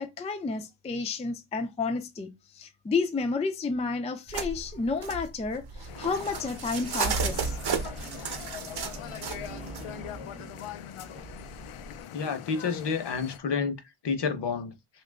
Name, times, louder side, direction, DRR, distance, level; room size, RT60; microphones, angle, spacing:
voice 1, 0.0-7.6, left 4 dB, 15° left, 0.3 m, -31 dB
sound 1, 4.3-9.8 11.2-12.0, right 5 dB, 50° right, 0.8 m, -34 dB
sound 2, 5.9-13.4, left 11 dB, 90° left, 0.6 m, -42 dB
sound 3, 7.2-12.0, right 3 dB, 15° right, 0.7 m, -46 dB
voice 2, 12.1-13.8 14.0-14.7, left 5 dB, 55° left, 0.9 m, -29 dB
2.8 x 2.5 x 3.3 m
wide cardioid pair, 120°, 49 cm